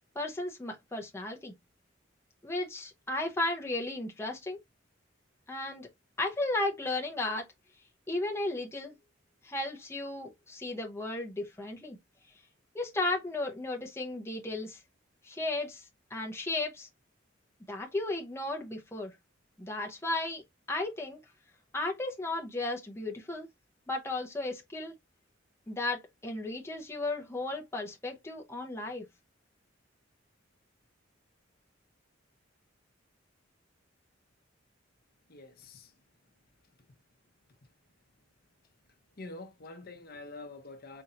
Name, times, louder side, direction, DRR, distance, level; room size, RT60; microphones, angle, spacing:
voice 1, 0.1-1.5 2.4-4.6 5.5-5.9 6.2-7.5 8.1-8.9 9.4-12.0 12.7-14.8 15.2-16.9 17.7-19.1 19.6-20.4 20.7-21.2 21.7-23.5 23.9-24.9 25.7-29.1, left 2 dB, 15° left, 0.7 m, -34 dB
voice 2, 35.3-35.8 39.2-41.0, left 2 dB, 50° left, 0.8 m, -46 dB
4.4 x 2.6 x 2.7 m
head